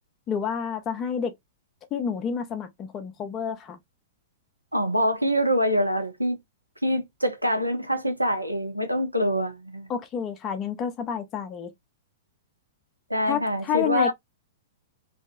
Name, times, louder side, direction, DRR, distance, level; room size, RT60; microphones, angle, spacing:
voice 1, 0.3-1.3 1.9-3.8 9.9-11.7 13.3-14.1, left 7 dB, 25° left, 0.3 m, -29 dB
voice 2, 4.7-6.4 6.8-9.9 13.1-14.1, equal, 85° right, 0.5 m, -25 dB
2.6 x 2.2 x 2.4 m
figure-of-eight pair, 105°, 0 cm